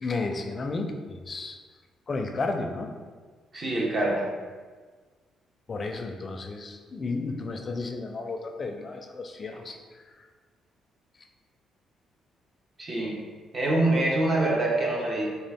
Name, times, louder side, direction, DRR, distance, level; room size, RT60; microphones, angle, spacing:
voice 1, 0.0-1.6 2.1-2.9 5.7-10.3, left 3 dB, 35° left, 4 dB, 0.4 m, -33 dB
voice 2, 3.5-4.3 12.8-13.2 13.5-15.3, right 2 dB, 40° right, -2 dB, 0.9 m, -25 dB
3.8 x 2.4 x 3.4 m, 1.5 s
cardioid pair, 90°, 0 cm